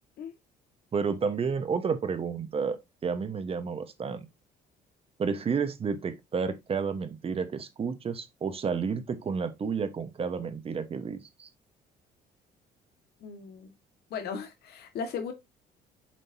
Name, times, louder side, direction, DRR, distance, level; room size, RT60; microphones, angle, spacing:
voice 1, 0.9-2.8 3.0-4.3 5.2-11.5, right 5 dB, 35° right, 1.2 m, -31 dB
voice 2, 13.2-13.7 14.1-15.3, left 6 dB, 70° left, 1.7 m, -37 dB
7.6 x 5.2 x 2.7 m
cardioid pair, 110°, 17 cm